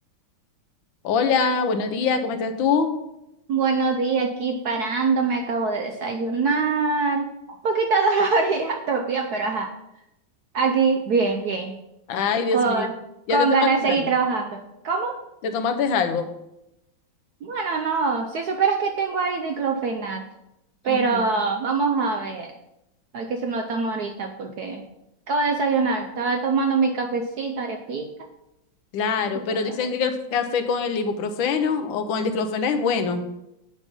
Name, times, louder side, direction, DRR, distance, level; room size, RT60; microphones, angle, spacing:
voice 1, 1.0-3.0 12.1-12.9 13.3-14.0 15.4-16.3 20.9-21.2 28.9-33.2, left 5 dB, 70° left, 7 dB, 1.5 m, -24 dB
voice 2, 3.5-7.3 7.6-9.7 10.5-11.8 12.5-12.9 13.3-15.2 17.4-20.2 20.8-22.5 23.1-24.8 25.3-28.1 29.5-29.9, right 4 dB, 65° right, 3 dB, 1.0 m, -23 dB
8.4 x 5.3 x 5.3 m, 0.87 s
omnidirectional pair, 2.3 m